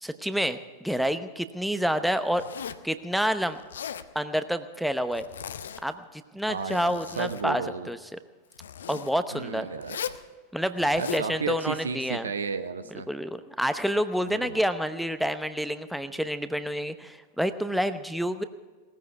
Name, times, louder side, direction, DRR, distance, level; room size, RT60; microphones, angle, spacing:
voice 1, 0.0-2.5 2.8-3.6 4.1-5.2 5.8-8.2 8.9-9.7 10.5-12.3 13.1-18.4, equal, ahead, 10 dB, 0.8 m, -28 dB
Zipper (clothing), 2.3-2.9 3.6-4.1 5.1-5.9 6.5-7.5 8.5-9.1 9.8-10.2 10.8-11.3, left 8 dB, 65° left, 0.7 m, -38 dB
voice 2, 6.5-7.9 9.3-10.0 10.9-13.1 14.2-14.6, right 5 dB, 70° right, 10 dB, 1.0 m, -33 dB
19.0 x 14.5 x 4.7 m, 1.4 s
figure-of-eight pair, 90°, 0 cm